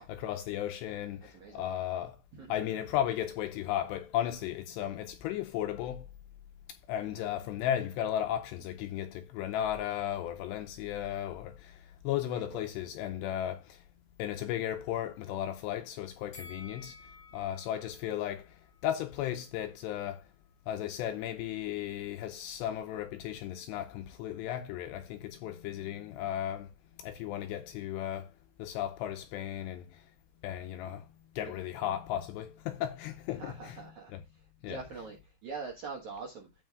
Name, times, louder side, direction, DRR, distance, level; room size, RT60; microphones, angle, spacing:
voice 1, 0.0-2.2 2.5-6.1 6.7-13.8 14.2-20.2 20.7-26.7 27.0-28.3 28.6-30.1 30.4-31.1 31.4-34.2 34.6-34.8, left 11 dB, 80° left, 2.5 m, -35 dB
voice 2, 1.3-1.6 2.3-2.5 12.3-12.6 31.4-31.5 33.3-34.1 34.7-35.2 35.4-36.5, right 4 dB, 70° right, 1.8 m, -43 dB
Bell, 16.3-19.5 19.9-20.0, left 3 dB, 65° left, 1.3 m, -54 dB
15.0 x 5.0 x 2.3 m
omnidirectional pair, 5.5 m